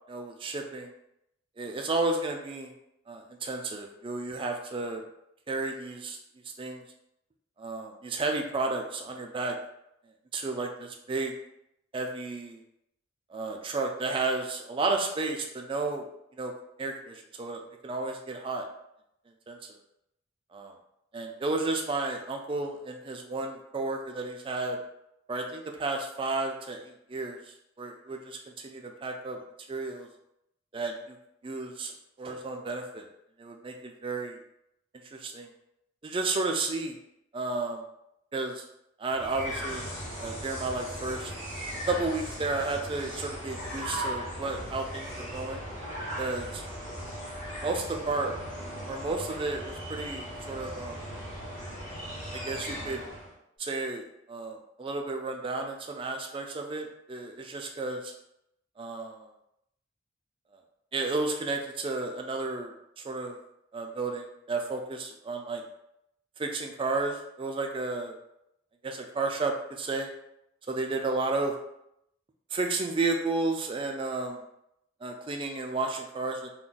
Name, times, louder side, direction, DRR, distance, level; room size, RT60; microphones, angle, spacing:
voice 1, 0.1-0.9 1.6-2.7 3.1-5.0 5.5-6.2 6.6-6.8 7.6-9.5 10.3-11.3 11.9-12.6 13.3-16.1 16.3-16.5 16.8-18.7 19.5-19.6 20.5-20.7 21.1-24.8 25.3-27.4 27.8-28.4 28.6-29.4 29.7-30.1 30.7-31.2 31.4-31.9 32.2-33.1 33.4-34.4 35.1-35.5 36.0-37.0 37.3-37.8 38.3-38.6 39.0-39.9 40.2-41.3 41.9-45.6 46.2-46.6 47.6-48.4 48.9-51.0 52.3-53.0 53.6-58.1 58.8-59.3 60.9-63.4 63.7-65.6 66.4-68.2 68.8-70.1 70.7-71.5 72.5-74.4 75.0-76.5, right 3 dB, 25° right, 3 dB, 0.3 m, -32 dB
sound 1, 39.1-53.3, equal, 40° left, 1.2 m, -38 dB
2.4 x 2.2 x 3.8 m, 0.81 s
head